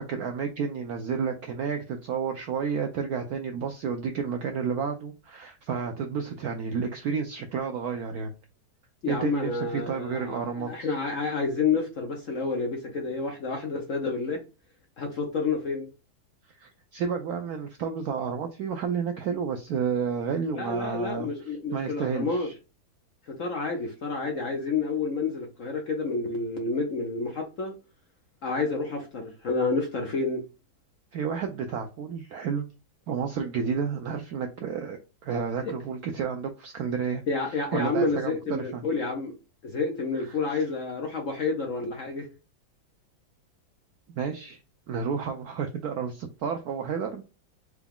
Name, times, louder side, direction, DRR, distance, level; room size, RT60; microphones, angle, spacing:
voice 1, 0.0-8.3 9.1-10.9 16.6-22.5 31.1-32.6 33.1-38.8 40.2-40.6 44.1-44.6 44.9-47.2, right 6 dB, 80° right, 0.8 m, -31 dB
voice 2, 9.0-14.4 15.0-15.9 20.5-22.5 23.3-27.7 28.4-30.4 35.6-35.7 37.3-39.3 39.6-42.3, left 4 dB, 55° left, 0.9 m, -29 dB
4.7 x 2.3 x 3.5 m
omnidirectional pair, 2.1 m